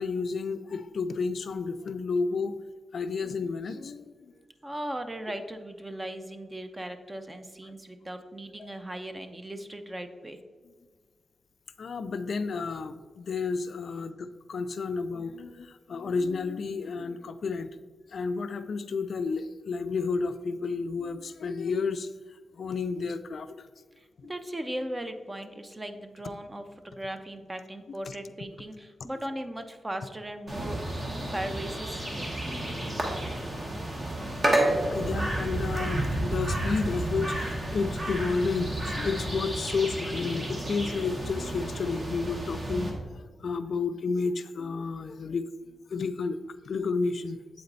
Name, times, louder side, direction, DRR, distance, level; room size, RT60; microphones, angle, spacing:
voice 1, 0.0-2.6 2.9-4.3 8.6-8.7 11.8-17.7 18.1-22.1 22.5-23.7 24.2-24.3 34.9-45.4 45.9-46.4 46.7-47.4, left 4 dB, 60° left, 11 dB, 0.3 m, -31 dB
voice 2, 4.6-10.4 24.0-30.8 31.3-32.4, right 1 dB, 20° right, 7 dB, 0.5 m, -38 dB
sound 1, 30.5-42.9, right 1 dB, 35° right, 1.3 m, -31 dB
7.9 x 4.2 x 3.9 m, 1.5 s
wide cardioid pair, 105°, 0 cm